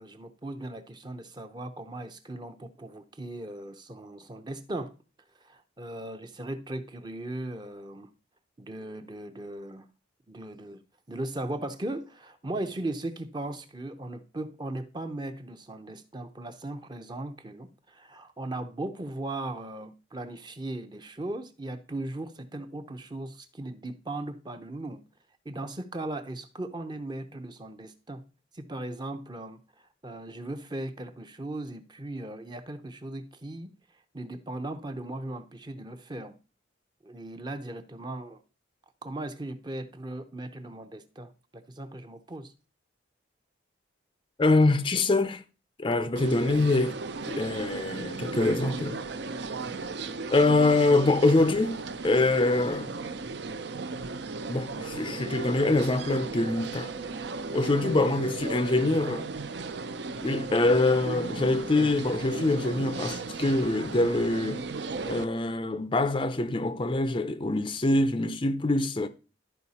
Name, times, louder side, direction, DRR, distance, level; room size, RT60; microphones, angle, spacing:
voice 1, 0.0-4.9 5.4-8.1 8.6-9.9 10.3-10.8 11.1-25.0 25.4-28.2 28.5-29.6 30.0-33.7 34.1-36.4 37.0-38.4 39.0-42.5, right 2 dB, 25° right, 0.7 m, -38 dB
voice 2, 44.4-45.4 45.8-47.0 47.3-49.0 50.3-52.9 54.5-56.9 57.5-59.3 60.2-64.6 65.1-69.1, left 2 dB, 25° left, 0.5 m, -24 dB
sound 1, 46.2-65.3, right 3 dB, 60° right, 0.6 m, -36 dB
12.0 x 4.8 x 4.2 m
head